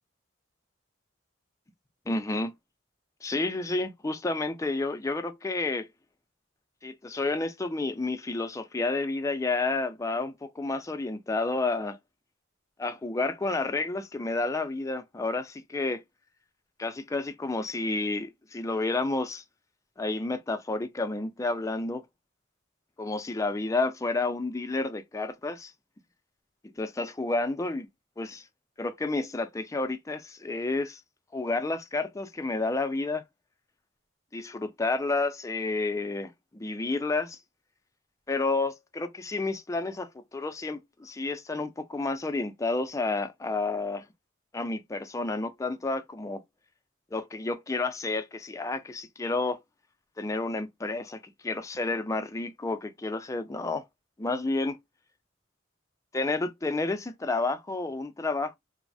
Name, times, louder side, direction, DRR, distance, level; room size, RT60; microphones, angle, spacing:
voice 1, 2.1-2.5 3.2-5.9 6.8-12.0 12.8-16.0 16.8-19.4 20.0-22.0 23.0-25.7 26.8-27.9 28.2-28.4 28.8-31.0 31.3-33.2 34.3-37.4 38.3-44.0 44.5-46.4 47.1-49.6 50.2-53.8 54.2-54.8 56.1-58.6, left 3 dB, 15° left, 0.4 m, -30 dB
3.0 x 2.0 x 2.5 m
head